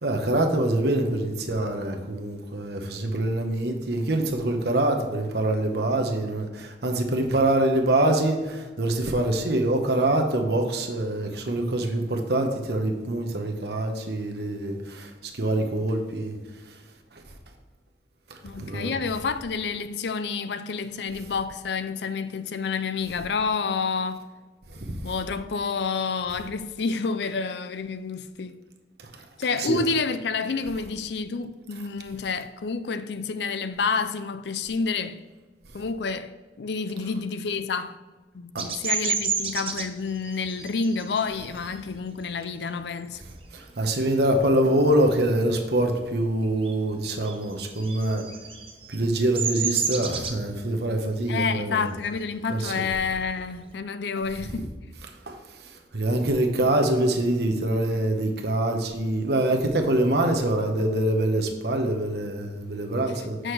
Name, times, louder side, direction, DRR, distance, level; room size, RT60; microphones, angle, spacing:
voice 1, 0.0-16.4 18.6-18.9 24.9-25.0 29.6-29.8 38.5-38.6 43.5-48.2 48.9-51.9 52.5-52.8 54.5-54.6 55.3-55.4 55.9-63.4, right 1 dB, 60° right, 1.0 m, -25 dB
voice 2, 18.4-24.3 25.0-28.6 29.4-35.2 35.7-38.0 38.3-43.2 51.3-54.8 63.4-63.5, left 4 dB, 65° left, 0.4 m, -29 dB
Bird vocalization bird call bird song, 38.6-43.8 44.2-44.5 44.8-46.1 46.3-53.7, right 6 dB, 30° right, 0.7 m, -32 dB
7.7 x 6.3 x 3.3 m
head